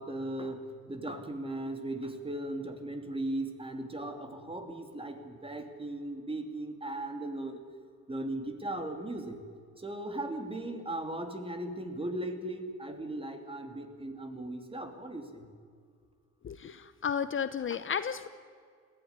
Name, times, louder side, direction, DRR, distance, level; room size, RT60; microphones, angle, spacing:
voice 1, 0.0-7.6 8.1-9.4 9.8-15.5, right 1 dB, 20° right, 6 dB, 3.0 m, -37 dB
voice 2, 16.4-18.3, left 7 dB, 40° left, 12 dB, 0.9 m, -33 dB
20.5 x 16.0 x 9.8 m, 2.1 s
cardioid pair, 90°, 30 cm